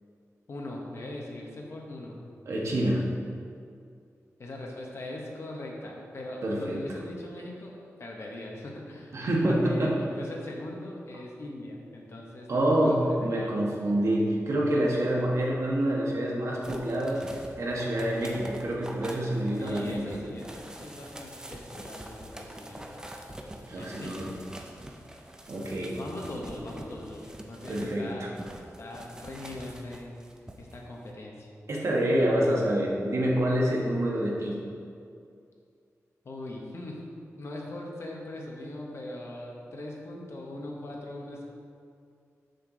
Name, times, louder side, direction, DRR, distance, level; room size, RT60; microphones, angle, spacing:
voice 1, 0.5-2.2 4.4-9.1 9.4-13.0 13.3-13.5 14.9-15.3 19.6-23.1 23.8-24.2 25.8-28.3 28.8-30.2 30.6-31.5 36.2-37.0 37.4-41.4, left 1 dB, 55° left, -1 dB, 1.1 m, -40 dB
voice 2, 2.4-3.0 6.4-6.8 9.1-9.9 12.5-20.2 23.7-24.4 25.5-26.0 27.7-28.3 31.7-34.6, right 1 dB, 65° right, -3 dB, 1.3 m, -27 dB
sound 1, 16.6-28.0 28.4-30.8 31.1-31.2, right 1 dB, 15° right, 0.5 m, -45 dB
6.6 x 6.6 x 3.9 m, 2.4 s
wide cardioid pair, 165°, 5 cm